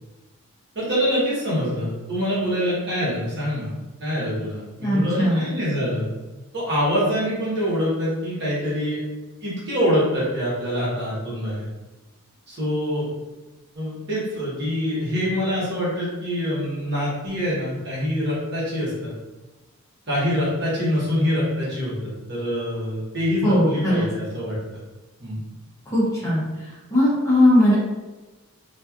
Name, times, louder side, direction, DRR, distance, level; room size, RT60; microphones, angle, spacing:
voice 1, 0.7-3.7 4.0-6.1 6.5-9.0 9.4-11.7 12.5-13.1 13.7-19.1 20.1-24.6 25.2-25.4, equal, 50° right, -8 dB, 1.1 m, -25 dB
voice 2, 4.8-5.4 23.4-24.1 25.9-26.4 26.9-27.8, left 1 dB, 15° left, -8 dB, 0.7 m, -19 dB
3.0 x 2.5 x 2.4 m, 1.1 s
head